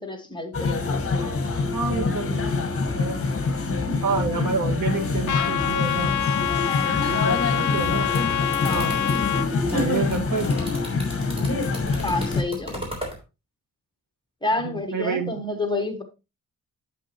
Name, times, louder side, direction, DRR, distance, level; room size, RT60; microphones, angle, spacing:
voice 1, 0.0-1.0 6.6-7.0 8.6-8.9 11.9-12.8 14.4-16.0, left 2 dB, 15° left, 5 dB, 1.3 m, -29 dB
sound 1, 0.5-12.4, left 3 dB, 40° left, 1.5 m, -25 dB
voice 2, 1.7-2.5 2.9-3.2 4.0-6.2 7.0-8.1 8.7-9.0 9.7-10.5 14.6-15.4, right 4 dB, 60° right, 2 dB, 1.9 m, -28 dB
Trumpet, 5.3-9.5, left 10 dB, 60° left, 0.7 m, -26 dB
sound 2, 8.0-13.2, equal, 15° right, 3.8 m, -37 dB
8.4 x 8.1 x 3.0 m, 0.27 s
wide cardioid pair, 150°, 35 cm